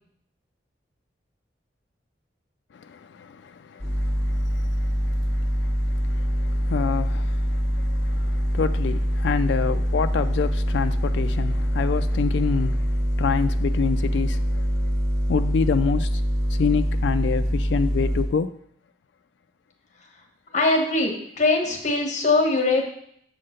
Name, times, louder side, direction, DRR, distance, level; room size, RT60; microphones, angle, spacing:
voice 1, 2.7-14.9 15.3-16.2 16.5-18.5, left 5 dB, 70° left, 0.3 m, -28 dB
sound 1, 3.8-18.2, equal, 35° right, 2.2 m, -24 dB
voice 2, 20.5-22.9, left 3 dB, 40° left, 1.3 m, -21 dB
7.4 x 3.8 x 6.5 m
head